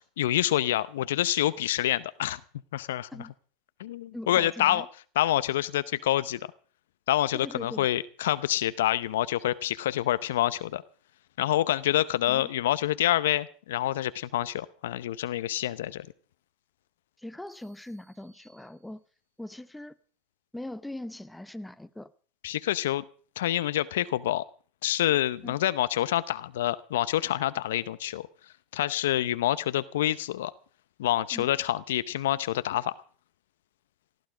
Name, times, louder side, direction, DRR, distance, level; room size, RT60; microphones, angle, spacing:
voice 1, 0.2-2.4 2.7-3.1 3.8-4.8 5.2-6.5 7.1-10.8 11.4-16.1 22.4-23.1 23.4-24.4 24.8-28.3 28.7-30.5 31.0-32.9, left 13 dB, 80° left, 0.7 m, -27 dB
voice 2, 4.1-4.9 7.3-7.9 12.3-12.5 17.2-19.0 19.4-20.0 20.5-22.1 25.4-25.6 31.3-31.5, left 1 dB, 5° left, 0.8 m, -41 dB
sound 1, 17.5-19.3, right 3 dB, 25° right, 6.1 m, -65 dB
18.5 x 13.5 x 4.9 m
hypercardioid pair, 100°, 0 cm